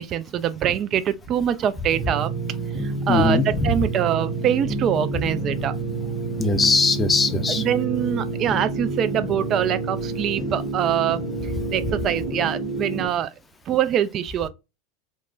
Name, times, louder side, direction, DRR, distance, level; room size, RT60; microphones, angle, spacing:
voice 1, 0.0-2.3 2.8-5.7 7.6-11.3 11.7-13.3 13.7-14.5, right 10 dB, 40° right, 0.3 m, -24 dB
Organ, 1.2-11.6, right 3 dB, 90° right, 0.7 m, -40 dB
sound 1, 1.9-13.1, right 3 dB, 20° right, 1.2 m, -29 dB
voice 2, 3.1-3.7 6.4-7.6, left 3 dB, 20° left, 0.5 m, -20 dB
3.3 x 2.1 x 2.5 m
hypercardioid pair, 90°, 0 cm